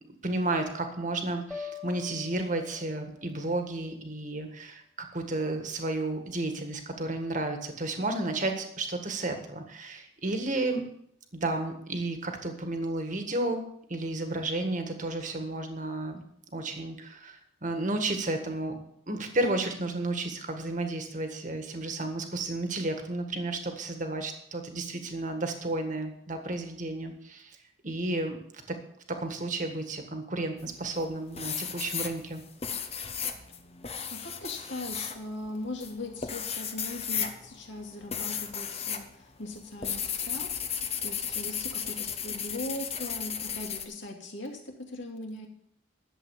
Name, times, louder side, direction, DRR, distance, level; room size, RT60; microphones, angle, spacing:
voice 1, 0.2-10.8 11.3-13.6 13.9-16.2 16.5-18.8 19.1-27.6 27.8-28.4 28.7-28.8 29.1-32.4, right 2 dB, 40° right, 5 dB, 1.7 m, -32 dB
sound 1, 1.5-3.4, left 6 dB, 5° left, 2.2 m, -43 dB
sound 2, 30.6-31.0 31.4-39.1 39.3-43.8, left 7 dB, 30° left, 1.0 m, -34 dB
voice 2, 34.1-45.5, left 2 dB, 65° left, 2 dB, 2.5 m, -40 dB
11.5 x 7.8 x 7.3 m, 0.71 s
head